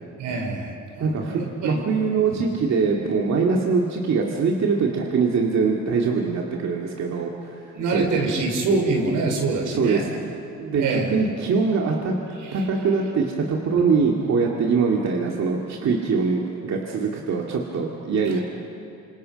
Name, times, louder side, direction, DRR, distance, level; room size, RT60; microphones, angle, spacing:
voice 1, 0.2-1.8 2.3-2.4 7.7-10.2 10.8-11.2 12.4-12.6 18.3-18.4, right 3 dB, 85° right, 2 dB, 4.5 m, -25 dB
voice 2, 1.0-8.1 9.7-10.1 10.6-12.1 12.5-18.4, right 5 dB, 60° right, -1 dB, 2.5 m, -23 dB
28.5 x 27.0 x 5.4 m, 2.6 s
cardioid pair, 90°, 30 cm